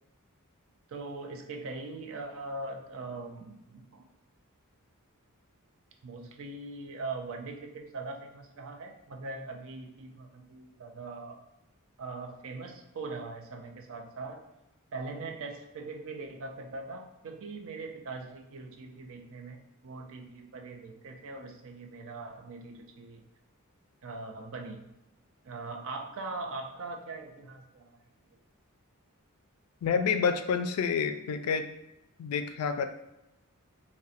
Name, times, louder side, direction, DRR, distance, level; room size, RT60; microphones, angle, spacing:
voice 1, 0.9-4.1 6.0-11.4 12.0-14.5 14.9-19.6 19.8-23.2 24.0-24.9 25.4-28.0, right 3 dB, 60° right, 4 dB, 0.4 m, -41 dB
voice 2, 29.8-31.7 32.2-32.9, left 6 dB, 75° left, 12 dB, 0.3 m, -28 dB
4.0 x 2.1 x 2.5 m, 0.90 s
head